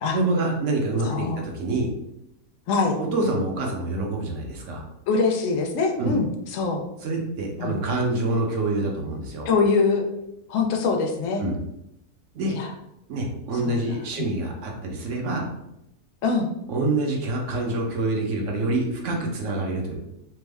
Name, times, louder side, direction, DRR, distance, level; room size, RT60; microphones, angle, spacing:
voice 1, 0.1-1.9 3.0-4.8 6.0-6.1 7.0-9.5 11.4-11.6 12.3-12.5 13.1-15.5 16.7-20.0, right 2 dB, 65° right, 1 dB, 0.8 m, -26 dB
voice 2, 1.0-1.5 2.7-3.0 5.1-6.8 7.6-7.8 9.5-10.1 10.5-11.4 12.5-12.7 13.7-13.8 16.2-16.5, left 4 dB, 70° left, 3 dB, 0.8 m, -23 dB
3.4 x 2.0 x 3.3 m, 0.83 s
omnidirectional pair, 1.6 m